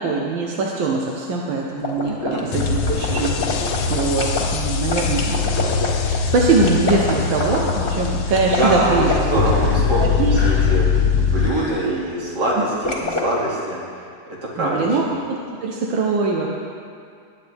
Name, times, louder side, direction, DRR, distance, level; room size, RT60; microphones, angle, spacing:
voice 1, 0.0-5.4 5.7-9.5 10.0-10.4 14.6-15.0 15.3-16.5, right 3 dB, 90° right, -2 dB, 1.8 m, -22 dB
sound 1, 1.8-4.4 4.9-10.1 10.3-10.8 11.4-11.9 12.8-13.3, left 3 dB, 30° left, 1.6 m, -27 dB
sound 2, 2.5-11.5, left 6 dB, 75° left, 1.5 m, -22 dB
voice 2, 8.6-14.0 14.3-15.1, right 1 dB, 60° right, -5 dB, 3.0 m, -24 dB
20.5 x 9.2 x 3.5 m, 2.3 s
omnidirectional pair, 2.0 m